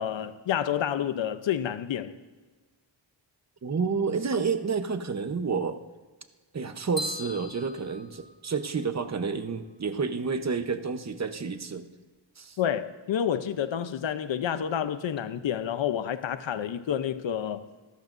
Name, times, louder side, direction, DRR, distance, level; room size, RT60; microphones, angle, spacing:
voice 1, 0.0-2.2 12.6-17.6, left 9 dB, 85° left, 0.8 m, -29 dB
voice 2, 3.6-5.8 6.5-11.8 12.4-12.6, right 5 dB, 35° right, 1.0 m, -30 dB
sound 1, 7.0-8.9, left 1 dB, 20° left, 2.1 m, -39 dB
27.0 x 13.5 x 2.6 m
wide cardioid pair, 130°, 44 cm